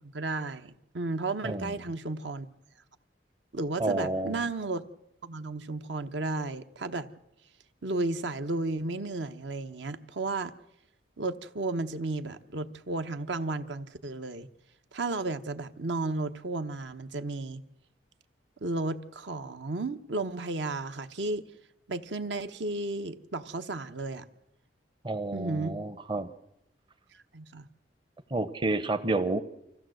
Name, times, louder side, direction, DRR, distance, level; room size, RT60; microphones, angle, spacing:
voice 1, 0.0-2.5 3.5-4.8 5.2-7.1 7.8-10.5 11.2-14.5 14.9-17.6 18.6-21.5 21.9-24.3 25.3-25.8 27.3-27.7, right 2 dB, 75° right, 1.0 m, -33 dB
voice 2, 1.4-1.7 3.8-4.4 25.0-26.3 28.3-29.4, right 2 dB, 25° right, 0.7 m, -30 dB
25.0 x 15.5 x 7.8 m
head